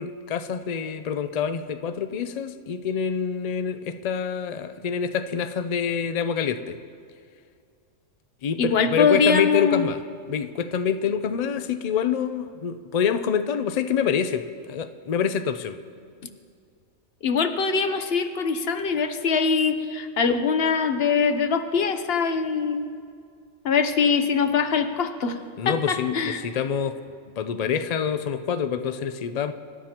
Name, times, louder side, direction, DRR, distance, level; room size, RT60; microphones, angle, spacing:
voice 1, 0.0-6.8 8.4-10.0 10.3-15.8 25.6-27.0 27.3-29.5, left 7 dB, 90° left, 10 dB, 0.3 m, -26 dB
voice 2, 8.6-9.8 17.2-22.9 23.6-25.4 25.6-26.4, left 5 dB, 55° left, 9 dB, 0.9 m, -23 dB
24.5 x 12.0 x 2.9 m, 2.2 s
omnidirectional pair, 1.4 m